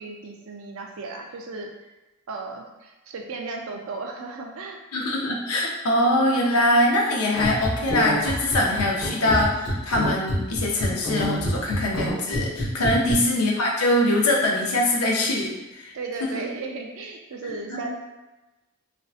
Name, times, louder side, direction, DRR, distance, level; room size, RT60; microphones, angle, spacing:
voice 1, 0.0-1.7 2.3-4.8 12.8-13.4 15.9-17.9, right 3 dB, 65° right, 2 dB, 0.4 m, -35 dB
voice 2, 4.9-15.9 16.2-16.5 17.7-17.9, left 1 dB, 90° left, -1 dB, 0.5 m, -23 dB
sound 1, 7.3-13.2, left 1 dB, 50° left, 1.1 m, -27 dB
2.5 x 2.1 x 2.3 m, 1.1 s
head